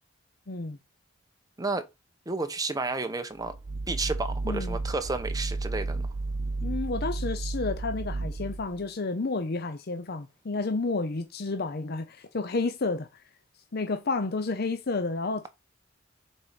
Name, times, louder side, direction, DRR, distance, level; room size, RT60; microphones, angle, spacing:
voice 1, 0.5-0.8 4.4-4.8 6.6-13.2 13.7-15.5, left 3 dB, 55° left, 0.7 m, -31 dB
voice 2, 2.3-3.6 3.9-6.1, right 3 dB, 20° right, 1.0 m, -31 dB
sound 1, 3.4-8.8, right 2 dB, 45° right, 0.5 m, -32 dB
6.9 x 4.4 x 5.2 m
head